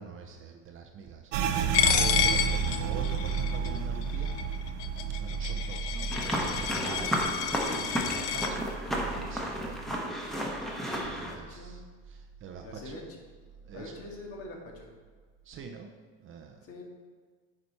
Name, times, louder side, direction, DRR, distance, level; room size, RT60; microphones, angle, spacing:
voice 1, 0.0-4.4 5.2-7.4 7.7-8.7 9.0-9.9 11.0-13.0 13.6-13.9 15.4-15.9 16.2-16.6, right 6 dB, 40° right, 3 dB, 0.7 m, -45 dB
sound 1, 1.3-10.7 11.0-12.2 12.6-13.0 13.5-14.1, right 6 dB, 85° right, 0.7 m, -33 dB
Coin (dropping), 1.7-8.5, left 9 dB, 75° left, 0.7 m, -30 dB
sound 2, 6.1-11.3, equal, ahead, 1.2 m, -32 dB
voice 2, 11.0-11.8 12.6-13.0 13.7-14.9 16.6-16.8, left 2 dB, 45° left, 0 dB, 1.9 m, -45 dB
9.0 x 5.1 x 4.2 m, 1.5 s
supercardioid pair, 115°, 33 cm